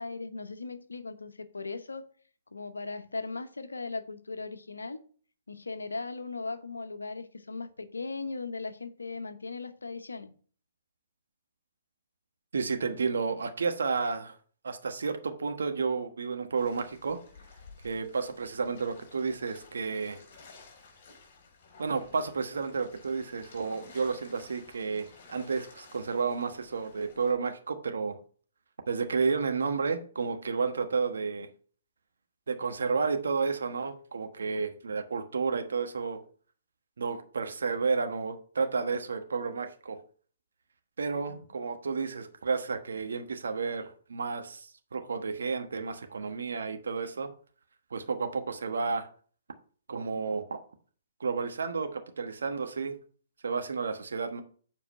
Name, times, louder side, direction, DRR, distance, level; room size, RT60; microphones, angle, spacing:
voice 1, 0.0-2.0 2.5-5.0 5.5-10.3 41.3-41.4, left 3 dB, 85° left, 0.9 m, -38 dB
voice 2, 12.5-14.3 14.6-17.2 17.8-20.2 21.8-28.2 28.9-31.5 32.5-36.2 37.0-40.0 41.0-47.3 47.9-49.1 49.9-50.6 51.2-53.0 53.4-54.4, right 5 dB, 75° right, 1.1 m, -31 dB
sound 1, 16.6-27.3, left 4 dB, 45° left, 4.3 m, -55 dB
7.5 x 4.8 x 5.5 m
figure-of-eight pair, 130°, 0 cm